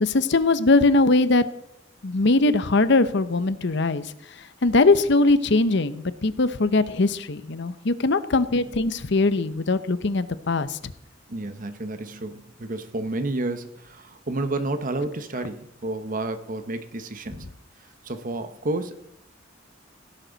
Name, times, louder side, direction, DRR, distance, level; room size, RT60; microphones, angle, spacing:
voice 1, 0.0-1.4 2.0-4.0 4.6-10.8, left 3 dB, 65° left, 13 dB, 0.8 m, -21 dB
voice 2, 11.3-17.4 18.0-19.0, right 2 dB, 45° right, 9 dB, 1.0 m, -30 dB
17.0 x 10.5 x 4.0 m, 0.78 s
head